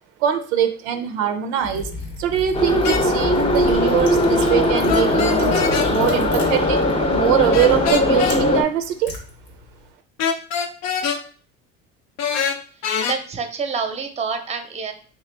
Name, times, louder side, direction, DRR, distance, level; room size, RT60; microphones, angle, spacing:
voice 1, 0.2-1.9 2.2-5.6 5.9-6.8 7.1-9.2, right 9 dB, 90° right, 8 dB, 0.5 m, -22 dB
Liquid, 1.6-9.9, left 2 dB, 85° left, 1.2 m, -35 dB
Subway metro underground, 2.5-8.6, left 1 dB, 20° left, 0.7 m, -19 dB
sound 1, 2.8-3.0 4.9-5.9 7.5-8.4 10.2-11.2 12.2-13.2, left 6 dB, 55° left, 0.6 m, -24 dB
voice 2, 12.8-14.9, right 5 dB, 20° right, 7 dB, 0.7 m, -28 dB
3.4 x 2.9 x 3.3 m, 0.42 s
supercardioid pair, 90°, 31 cm